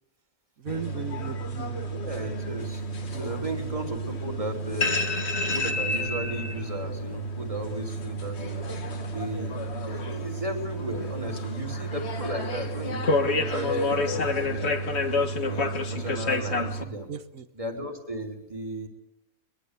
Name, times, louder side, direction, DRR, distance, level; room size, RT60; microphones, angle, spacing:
voice 1, 0.6-1.9 3.1-3.6 17.1-17.5, right 6 dB, 75° right, 11 dB, 1.7 m, -37 dB
sound 1, 0.7-16.8, left 1 dB, 50° left, 1.8 m, -29 dB
voice 2, 1.9-2.8 3.1-5.0 5.5-9.6 9.8-14.8 15.3-17.1 17.6-18.9, right 1 dB, 25° right, 3 dB, 3.3 m, -35 dB
22.5 x 22.5 x 8.3 m, 0.88 s
omnidirectional pair, 1.5 m